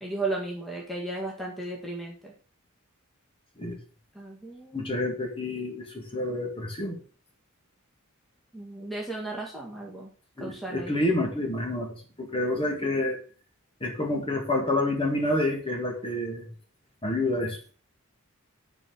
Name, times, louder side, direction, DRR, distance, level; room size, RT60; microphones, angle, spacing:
voice 1, 0.0-2.3 4.1-4.8 8.5-10.1 10.4-11.0, right 2 dB, ahead, -2 dB, 1.9 m, -35 dB
voice 2, 4.7-7.0 10.4-13.2 13.8-16.5 17.0-17.6, left 1 dB, 25° left, 2 dB, 2.3 m, -28 dB
10.5 x 4.6 x 6.5 m, 0.40 s
head